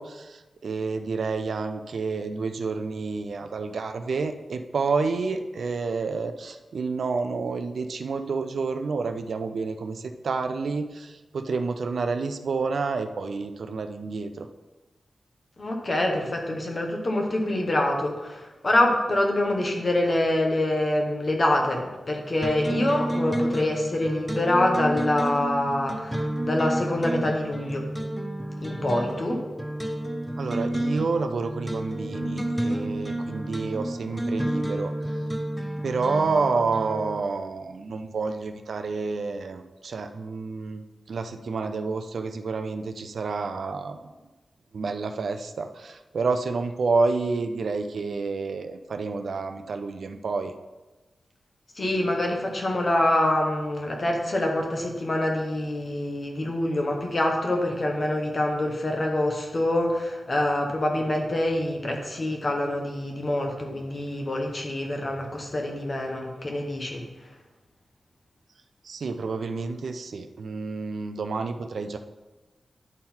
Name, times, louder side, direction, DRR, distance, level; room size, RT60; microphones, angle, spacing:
voice 1, 0.0-14.5 30.4-34.9 35.8-44.1 44.7-50.5 68.8-72.0, right 4 dB, 65° right, 7 dB, 0.4 m, -29 dB
voice 2, 15.6-27.8 28.6-29.4 51.8-67.0, left 1 dB, 30° left, 1 dB, 1.1 m, -25 dB
sound 1, 22.4-37.2, right 1 dB, ahead, 0.6 m, -30 dB
10.5 x 3.8 x 4.4 m, 1.2 s
wide cardioid pair, 175°, 0 cm